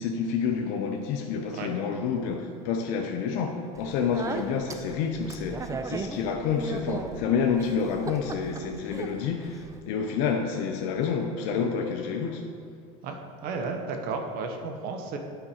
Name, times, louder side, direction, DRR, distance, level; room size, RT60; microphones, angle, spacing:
voice 1, 0.0-12.4, left 6 dB, 65° left, 3 dB, 0.7 m, -29 dB
Speech, 3.8-9.8, right 3 dB, 20° right, 0.5 m, -37 dB
voice 2, 13.0-15.2, right 4 dB, 55° right, 4 dB, 0.9 m, -33 dB
8.8 x 5.0 x 4.3 m, 2.3 s
supercardioid pair, 105°, 18 cm